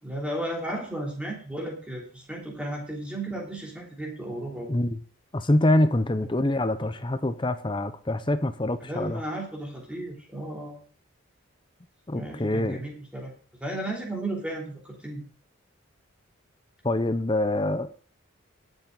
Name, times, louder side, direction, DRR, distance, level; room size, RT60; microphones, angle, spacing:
voice 1, 0.0-4.7 8.8-10.8 12.1-13.3 13.6-15.2, right 1 dB, 5° right, 3.1 m, -34 dB
voice 2, 4.7-5.0 5.3-9.2 12.1-12.8 16.8-17.9, left 1 dB, 20° left, 0.6 m, -25 dB
19.5 x 7.2 x 3.9 m
head